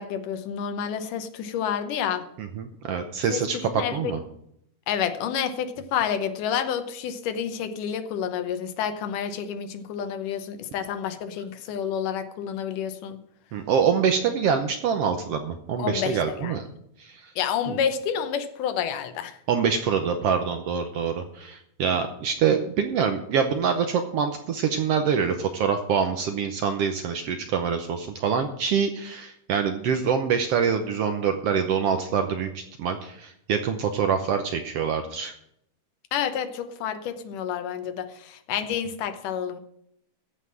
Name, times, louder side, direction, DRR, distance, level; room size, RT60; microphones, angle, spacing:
voice 1, 0.0-2.3 3.3-4.1 4.9-13.2 15.8-16.6 17.4-19.4 36.1-39.6, left 8 dB, 90° left, 9 dB, 2.6 m, -29 dB
voice 2, 2.4-4.2 13.5-16.7 17.0-17.3 17.7-17.8 19.5-35.3, right 6 dB, 70° right, 7 dB, 1.5 m, -25 dB
14.5 x 5.6 x 7.6 m, 0.74 s
omnidirectional pair, 3.6 m